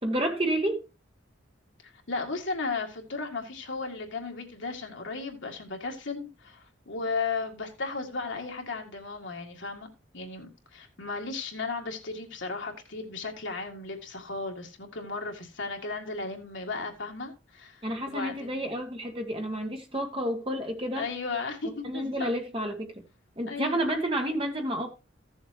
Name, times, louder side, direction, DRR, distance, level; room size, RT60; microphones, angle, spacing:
voice 1, 0.0-0.8 17.8-21.1 21.8-22.9 23.4-24.9, right 1 dB, 25° right, 1.7 m, -30 dB
voice 2, 2.1-9.9 10.1-18.7 21.0-22.3 23.5-23.9, left 4 dB, 70° left, 2.0 m, -35 dB
15.5 x 7.1 x 2.9 m
head